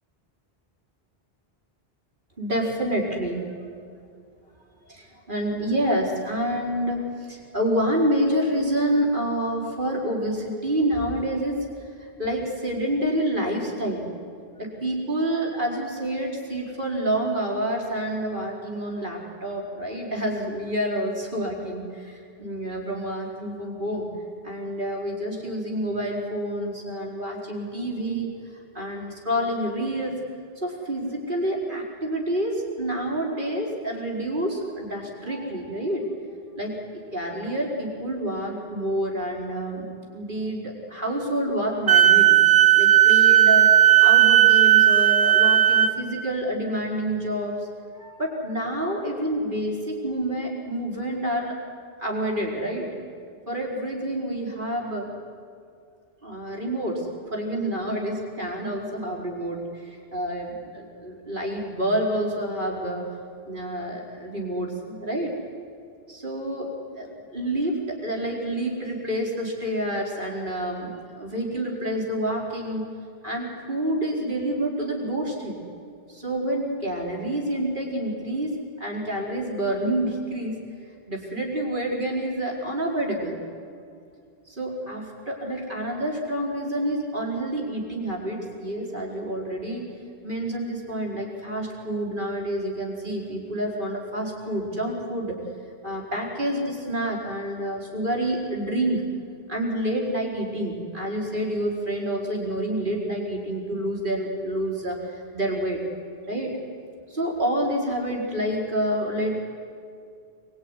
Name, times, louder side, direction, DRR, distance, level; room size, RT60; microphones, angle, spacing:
voice 1, 2.4-3.7 4.8-11.6 11.8-14.1 14.6-24.1 24.4-28.3 28.7-30.2 30.6-36.1 36.5-42.4 42.8-43.7 44.0-47.7 48.0-51.5 52.0-53.0 53.5-55.1 56.2-63.1 63.4-65.3 66.1-72.9 73.2-75.5 76.1-80.5 81.1-83.4 84.5-89.8 90.2-95.4 95.8-99.0 99.5-105.8 106.3-106.6 107.1-109.4, right 1 dB, 55° right, -1 dB, 5.0 m, -28 dB
Wind instrument woodwind instrument, 41.9-45.9, right 12 dB, 90° right, 1.6 m, -15 dB
26.0 x 22.0 x 9.9 m, 2.3 s
omnidirectional pair, 1.0 m